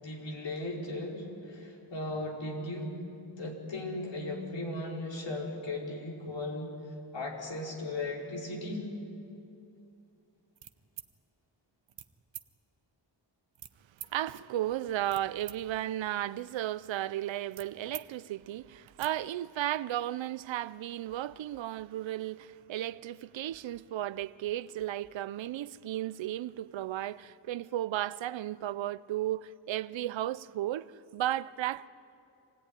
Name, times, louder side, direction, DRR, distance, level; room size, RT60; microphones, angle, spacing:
voice 1, 0.0-2.9 3.4-6.8 7.1-8.9, left 2 dB, 75° left, 4.8 m, -37 dB
sound 1, 10.6-11.1 11.9-12.1 12.3-12.5 13.5-14.1 14.8-15.6 15.9-18.1 18.4-18.5 18.8-19.1, right 9 dB, 70° right, 1.0 m, -47 dB
voice 2, 14.1-31.9, right 13 dB, 90° right, 0.6 m, -34 dB
26.0 x 17.0 x 9.9 m
cardioid pair, 70°, 44 cm